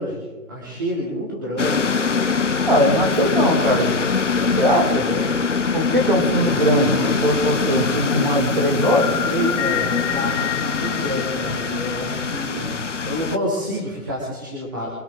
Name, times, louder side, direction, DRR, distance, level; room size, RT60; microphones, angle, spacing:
voice 1, 0.0-1.9 4.3-5.4 5.8-6.6 9.2-12.7 13.0-14.9, equal, 15° right, -4 dB, 1.7 m, -28 dB
sound 1, 1.6-13.4, left 5 dB, 55° left, 1.0 m, -23 dB
voice 2, 2.7-3.9 4.6-5.0 5.7-9.2 12.6-12.8, equal, 35° right, 2 dB, 2.4 m, -20 dB
sound 2, 6.4-7.7 8.8-12.3, left 9 dB, 30° left, 5.5 m, -29 dB
24.0 x 12.5 x 3.8 m, 1.2 s
hypercardioid pair, 175°, 44 cm